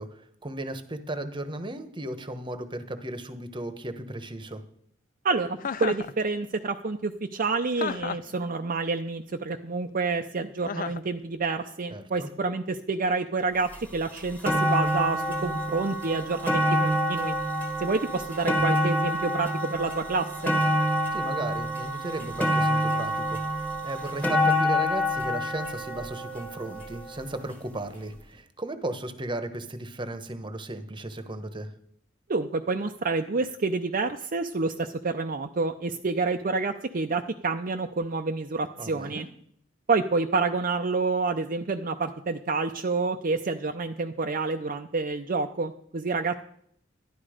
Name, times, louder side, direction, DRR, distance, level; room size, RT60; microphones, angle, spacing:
voice 1, 0.0-4.6 11.9-12.3 21.1-31.7 38.8-39.2, right 1 dB, 25° right, 9 dB, 1.0 m, -35 dB
voice 2, 5.2-17.4 17.8-20.5 32.3-39.3 39.9-46.4, right 3 dB, 45° right, 5 dB, 0.6 m, -28 dB
Chuckle chortle, 5.6-6.1 7.8-8.3 10.7-11.1, left 6 dB, 45° left, 0.5 m, -32 dB
sound 1, 13.7-13.8 14.2-27.3 28.1-28.2, equal, 10° left, 1.3 m, -27 dB
12.0 x 11.0 x 5.0 m, 0.67 s
head